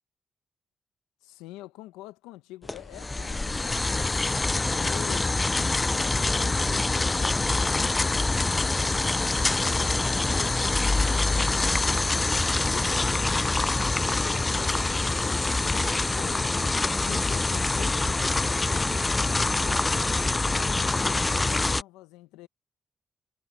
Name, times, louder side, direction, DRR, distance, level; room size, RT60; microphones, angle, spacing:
voice 1, 1.2-3.9 4.7-5.4 5.9-10.6 11.0-12.3 12.7-16.5 17.0-19.9 20.3-22.5, left 17 dB, 85° left, 0.8 m, -46 dB
sound 1, 2.7-21.8, left 3 dB, 30° left, 0.4 m, -25 dB
hypercardioid pair, 40°, 0 cm